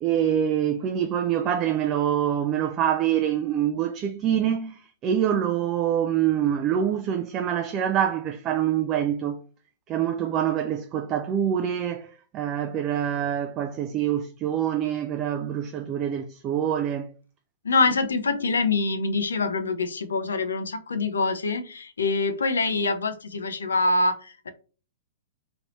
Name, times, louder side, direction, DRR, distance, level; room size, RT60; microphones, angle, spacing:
voice 1, 0.0-9.4 9.9-17.1, right 9 dB, 30° right, 0.4 m, -25 dB
voice 2, 17.6-24.5, left 3 dB, 85° left, 0.6 m, -25 dB
3.1 x 2.8 x 3.0 m
hypercardioid pair, 120°, 0 cm